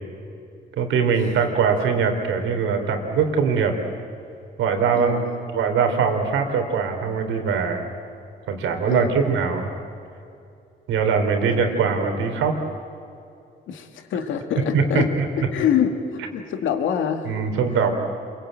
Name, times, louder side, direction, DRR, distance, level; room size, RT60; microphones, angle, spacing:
voice 1, 0.8-3.7 4.6-5.2 5.5-7.9 8.5-9.7 10.9-12.6 14.7-15.2 17.2-17.9, right 5 dB, 85° right, 5 dB, 3.5 m, -22 dB
voice 2, 4.9-5.3 8.9-9.3 11.5-11.6 13.7-17.4, left 8 dB, 80° left, 6 dB, 2.3 m, -26 dB
27.5 x 23.0 x 9.1 m, 2.5 s
cardioid pair, 90°, 20 cm